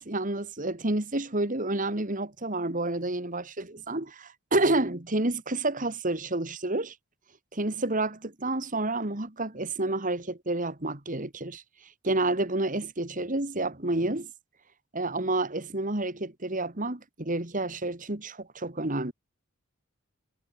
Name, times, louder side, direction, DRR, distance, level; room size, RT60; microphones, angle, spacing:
voice 1, 0.0-6.9 7.5-11.6 12.0-14.3 14.9-19.1, right 2 dB, 35° right, 2.3 m, -29 dB
head